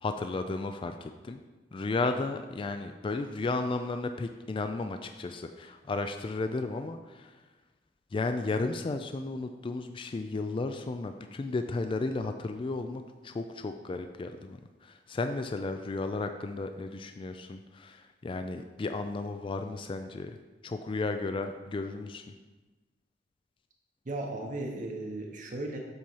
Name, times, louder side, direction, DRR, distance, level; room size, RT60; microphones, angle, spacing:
voice 1, 0.0-1.4 1.7-7.3 8.1-14.6 14.8-20.4 20.6-22.2, left 3 dB, 25° left, 7 dB, 0.3 m, -34 dB
voice 2, 24.1-25.8, right 2 dB, 45° right, 0 dB, 0.8 m, -36 dB
7.7 x 4.3 x 5.4 m, 1.2 s
head